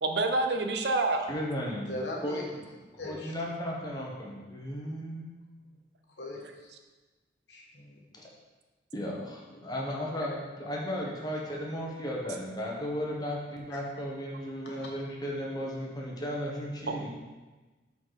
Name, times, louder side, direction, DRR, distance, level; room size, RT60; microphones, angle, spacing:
voice 1, 0.0-1.3 16.9-17.1, right 2 dB, 65° right, 5 dB, 0.7 m, -27 dB
voice 2, 1.3-1.9 2.2-2.7 3.0-5.3 8.1-8.3 8.9-17.1, equal, 20° left, -2 dB, 1.2 m, -35 dB
voice 3, 1.9-2.4 3.0-3.3 6.2-6.7 7.5-8.0 14.7-14.8, left 1 dB, 75° left, -1 dB, 1.4 m, -39 dB
7.2 x 4.1 x 4.8 m, 1.2 s
head